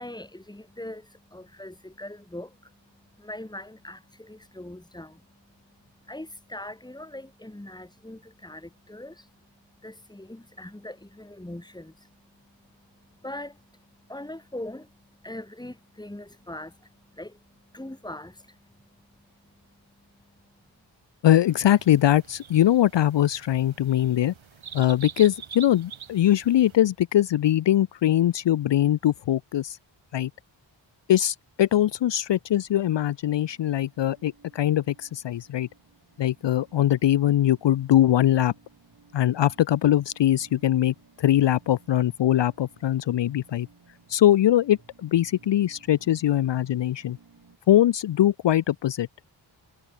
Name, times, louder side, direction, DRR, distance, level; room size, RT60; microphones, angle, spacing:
voice 1, 0.0-20.6, left 1 dB, 10° left, 2.2 m, -42 dB
voice 2, 21.2-24.3 24.7-29.8 30.1-30.3 31.1-35.7 36.2-38.5 39.1-43.7 44.1-47.2 47.7-49.1, left 12 dB, 70° left, 0.6 m, -22 dB
sound 1, 21.4-26.8, right 7 dB, 85° right, 2.6 m, -45 dB
sound 2, 33.3-47.6, right 4 dB, 50° right, 6.3 m, -57 dB
wide cardioid pair, 80°, 46 cm